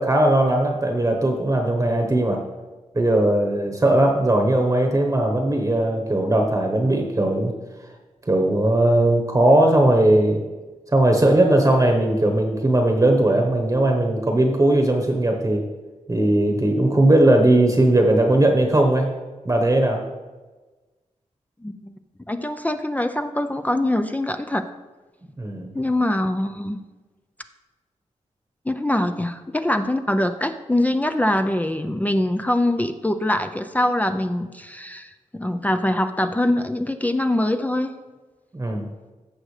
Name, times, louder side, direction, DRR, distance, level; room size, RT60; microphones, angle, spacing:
voice 1, 0.0-2.4 2.9-7.5 8.3-10.4 10.9-15.6 16.1-19.1 19.4-20.0 25.4-25.7 38.5-38.9, right 1 dB, 25° right, 2 dB, 1.1 m, -18 dB
voice 2, 21.6-21.9 22.3-24.7 25.7-26.8 28.7-37.9, left 1 dB, 10° left, 7 dB, 0.5 m, -23 dB
15.0 x 6.2 x 3.3 m, 1.3 s
wide cardioid pair, 85°, 13 cm